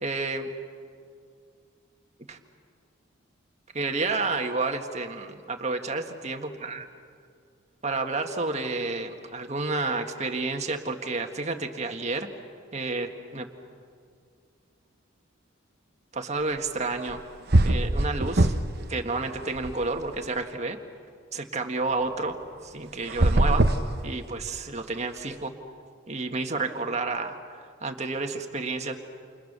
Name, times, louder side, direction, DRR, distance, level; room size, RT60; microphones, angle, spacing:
voice 1, 0.0-0.5 2.3-2.4 3.8-6.9 7.8-12.3 12.7-13.5 16.1-17.2 17.6-18.5 18.9-20.8 21.3-22.4 22.6-23.7 24.0-25.5 26.1-29.0, right 3 dB, 35° right, 4 dB, 1.8 m, -30 dB
sound 1, 17.1-17.2 17.5-18.8 19.2-20.3 23.0-24.6, right 1 dB, 50° right, 1.0 m, -22 dB
29.0 x 28.5 x 6.8 m, 2.3 s
head